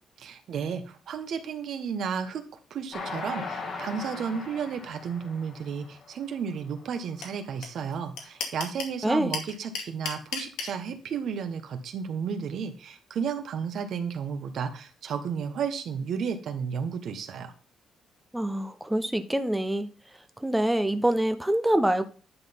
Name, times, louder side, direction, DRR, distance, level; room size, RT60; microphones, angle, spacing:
voice 1, 0.2-2.4 2.7-17.5, right 6 dB, 70° right, 1.4 m, -33 dB
Train, 2.9-6.4 6.9-7.0 7.3-7.4, left 3 dB, 50° left, 2.6 m, -38 dB
sound 1, 7.2-7.3 7.6-7.7 7.9-8.9 9.3-10.7, left 6 dB, 90° left, 2.2 m, -32 dB
voice 2, 18.3-19.9 20.4-22.1, right 1 dB, 5° right, 0.9 m, -25 dB
10.5 x 4.0 x 5.3 m
cardioid pair, 90°, 0 cm